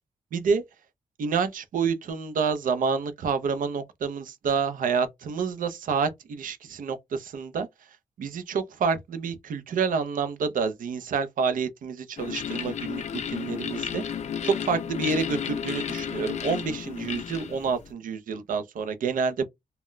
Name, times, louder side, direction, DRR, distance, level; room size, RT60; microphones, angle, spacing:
voice 1, 0.3-0.6 1.2-7.7 8.2-13.0 13.3-14.0 14.4-19.4, right 5 dB, 70° right, 0.5 m, -28 dB
sound 1, 12.2-17.9, left 8 dB, 50° left, 0.4 m, -33 dB
2.1 x 2.1 x 3.7 m
wide cardioid pair, 135°, 15 cm